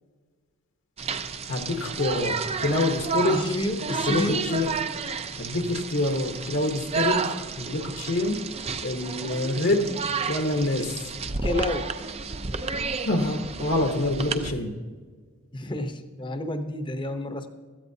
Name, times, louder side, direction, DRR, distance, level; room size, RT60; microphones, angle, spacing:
sound 1, 1.0-14.5, right 4 dB, 30° right, 0.5 m, -31 dB
voice 1, 1.5-3.6 3.9-4.8 5.4-8.5 8.8-9.9 10.3-10.9 13.1-14.8, left 2 dB, 60° left, 4 dB, 1.1 m, -26 dB
voice 2, 3.3-4.5 10.8-10.9 11.2-11.9 15.5-17.5, left 1 dB, 20° left, 8 dB, 0.8 m, -30 dB
16.5 x 13.5 x 2.8 m, 1.5 s
head